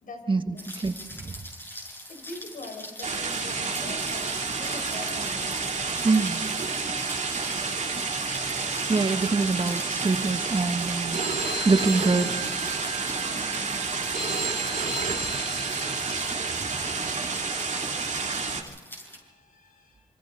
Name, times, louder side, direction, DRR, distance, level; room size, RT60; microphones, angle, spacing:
Rain, 0.6-19.2, equal, 15° left, 7.6 m, -43 dB
voice 1, 0.8-1.3 6.0-6.4 8.9-11.2 11.6-12.3 16.6-16.9, right 3 dB, 35° right, 8 dB, 1.5 m, -25 dB
voice 2, 2.1-6.6 13.2-13.7 18.8-20.0, left 2 dB, 70° left, 3 dB, 5.1 m, -45 dB
sound 1, 3.0-18.6, right 4 dB, 55° right, 2.7 m, -30 dB
Telephone, 11.1-17.1, right 3 dB, 75° right, 3.4 m, -34 dB
27.0 x 24.5 x 3.9 m, 1.2 s
cardioid pair, 60°, 14 cm